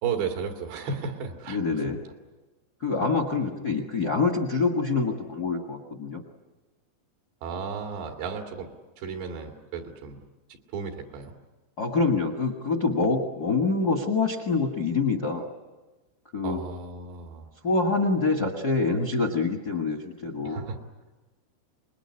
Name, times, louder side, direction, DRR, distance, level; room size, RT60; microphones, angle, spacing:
voice 1, 0.0-2.0 7.4-10.2 10.7-11.4 16.4-17.5 20.4-20.8, right 5 dB, 80° right, 3 dB, 4.4 m, -34 dB
voice 2, 1.5-2.0 2.8-6.2 11.8-15.5 16.3-16.6 17.6-20.6, left 3 dB, 50° left, 6 dB, 1.1 m, -26 dB
26.5 x 21.0 x 9.8 m, 1.2 s
omnidirectional pair, 4.9 m